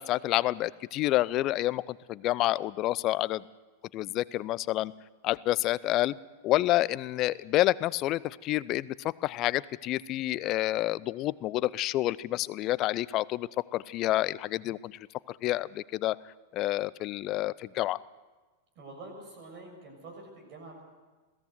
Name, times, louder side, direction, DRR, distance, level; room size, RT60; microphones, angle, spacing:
voice 1, 0.0-3.4 3.9-4.9 5.2-6.1 6.4-8.9 9.2-15.0 15.3-16.2 16.5-18.0, left 16 dB, 40° left, 20 dB, 0.5 m, -28 dB
voice 2, 18.7-20.8, right 2 dB, 45° right, 0 dB, 6.6 m, -46 dB
21.5 x 16.0 x 8.0 m, 1.3 s
figure-of-eight pair, 90°, 0 cm